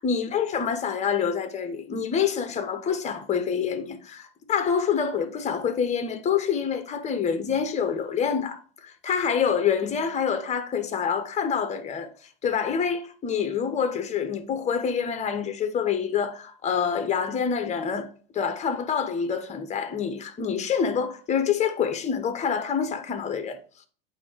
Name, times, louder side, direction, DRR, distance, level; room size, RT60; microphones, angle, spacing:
voice 1, 0.0-12.1 12.4-18.1 18.3-23.6, left 7 dB, 25° left, 1.0 m, -26 dB
8.3 x 2.9 x 4.6 m
hypercardioid pair, 105°, 29 cm